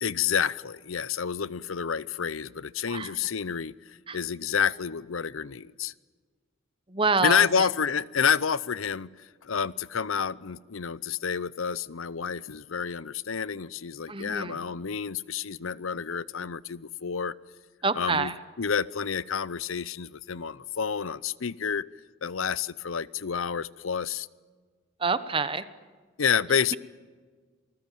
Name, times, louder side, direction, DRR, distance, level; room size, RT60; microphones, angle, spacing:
voice 1, 0.0-3.7 4.1-5.9 7.2-17.3 18.0-18.3 18.6-21.8 22.2-24.3 26.2-26.8, left 7 dB, 75° left, 20 dB, 0.7 m, -29 dB
voice 2, 6.9-7.7 14.1-14.6 17.8-18.3 25.0-25.6, right 4 dB, 25° right, 13 dB, 1.1 m, -27 dB
28.5 x 20.0 x 9.1 m, 1.5 s
head